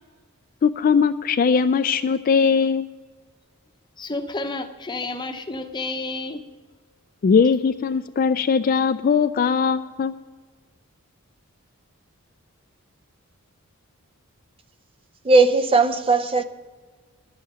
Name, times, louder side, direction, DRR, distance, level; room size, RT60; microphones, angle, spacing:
voice 1, 0.6-2.9 7.2-10.1, left 6 dB, 40° left, 0.3 m, -20 dB
voice 2, 4.0-6.4, left 2 dB, 20° left, 0.8 m, -30 dB
voice 3, 15.2-16.4, right 3 dB, 25° right, 0.5 m, -17 dB
11.5 x 7.4 x 7.5 m
head